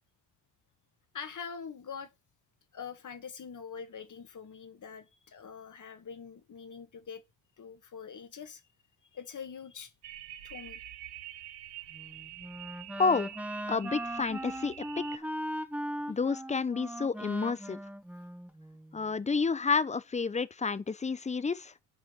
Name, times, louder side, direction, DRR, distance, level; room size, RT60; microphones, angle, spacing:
voice 1, 1.1-2.1 2.7-7.2 7.6-8.6 9.1-9.9 10.4-10.8, left 6 dB, 40° left, 2.0 m, -44 dB
sound 1, 10.0-15.2, right 12 dB, 90° right, 1.0 m, -46 dB
Wind instrument woodwind instrument, 11.9-19.1, equal, 5° right, 1.0 m, -39 dB
voice 2, 13.0-13.3 13.7-15.3 16.1-17.8 18.9-21.7, left 4 dB, 15° left, 0.7 m, -30 dB
8.7 x 5.0 x 6.7 m
hypercardioid pair, 65°, 47 cm